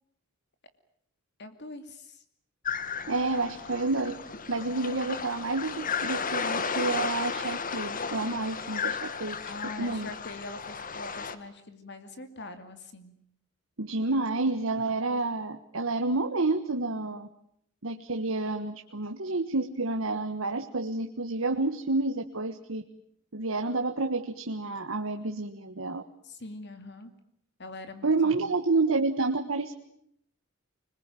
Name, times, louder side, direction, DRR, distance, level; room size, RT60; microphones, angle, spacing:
voice 1, 1.4-2.2 9.4-13.1 26.2-27.1 27.6-28.5, left 2 dB, 60° left, 8 dB, 2.6 m, -43 dB
sound 1, 2.7-11.4, left 6 dB, 45° left, 1.6 m, -34 dB
voice 2, 3.1-4.1 4.5-9.4 9.8-10.1 13.8-17.3 17.8-22.8 23.3-26.0 28.0-29.7, right 3 dB, 85° right, 6 dB, 1.5 m, -29 dB
26.0 x 21.0 x 9.2 m, 0.70 s
head